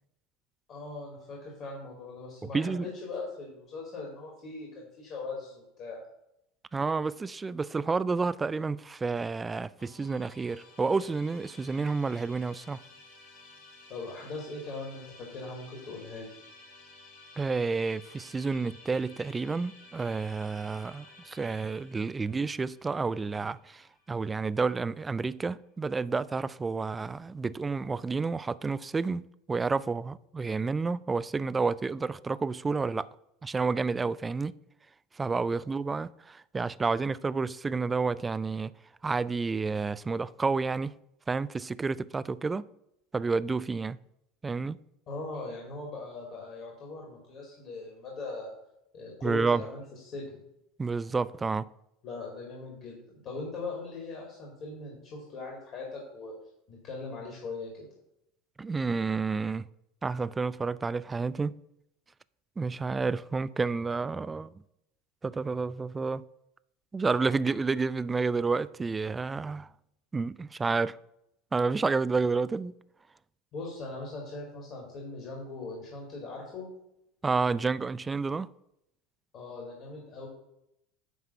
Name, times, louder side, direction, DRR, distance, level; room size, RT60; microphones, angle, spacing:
voice 1, 0.7-6.0 13.9-16.3 45.1-48.5 48.9-50.4 52.0-56.3 56.7-57.9 73.5-76.7 79.3-80.3, left 3 dB, 45° left, 2.5 m, -40 dB
voice 2, 2.5-2.9 6.7-12.8 17.4-33.1 33.4-34.5 35.2-38.7 39.0-40.9 41.3-42.6 43.1-44.0 44.4-44.8 49.2-49.6 50.8-51.7 58.6-59.6 60.0-61.6 62.6-64.5 65.2-66.2 66.9-69.7 70.1-71.0 71.5-72.7 77.2-78.5, right 4 dB, 20° right, 0.3 m, -30 dB
Musical instrument, 9.8-25.0, left 3 dB, 65° left, 3.4 m, -54 dB
10.0 x 3.6 x 7.1 m
figure-of-eight pair, 75°, 0 cm